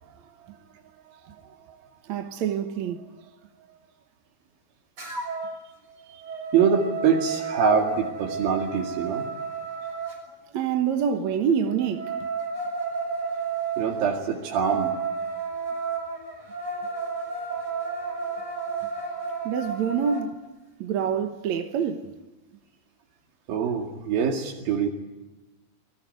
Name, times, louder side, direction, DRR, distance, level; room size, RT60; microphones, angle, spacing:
voice 1, 0.0-0.6 1.0-3.1 3.7-3.8 10.5-12.3 17.3-18.3 19.4-20.4 20.8-22.1, right 7 dB, 60° right, 2.2 m, -28 dB
sound 1, 5.0-5.6 6.0-10.2 11.7-20.2, right 5 dB, 35° right, 7.5 m, -32 dB
voice 2, 6.5-9.3 13.8-14.9 23.5-24.9, right 6 dB, 75° right, 4.1 m, -24 dB
30.0 x 21.0 x 9.4 m
omnidirectional pair, 4.2 m